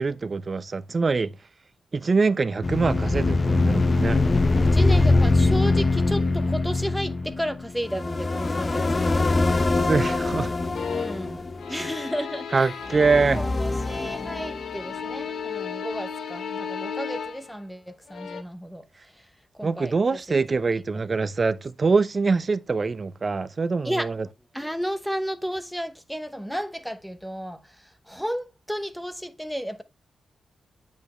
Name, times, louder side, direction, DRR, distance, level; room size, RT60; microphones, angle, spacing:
voice 1, 0.0-1.3 1.9-4.2 9.8-10.5 12.5-13.4 19.6-24.2, right 4 dB, 40° right, 0.6 m, -24 dB
sound 1, 2.6-12.2 12.9-14.9, left 3 dB, 35° left, 0.8 m, -23 dB
voice 2, 4.7-9.7 10.9-12.8 13.4-20.4 21.1-21.2 23.8-24.2 24.5-29.8, equal, ahead, 0.9 m, -33 dB
sound 2, 10.7-11.3 11.6-13.5 13.8-17.6 18.1-18.4, left 7 dB, 80° left, 1.0 m, -34 dB
8.4 x 5.2 x 3.1 m
cardioid pair, 80°, 0 cm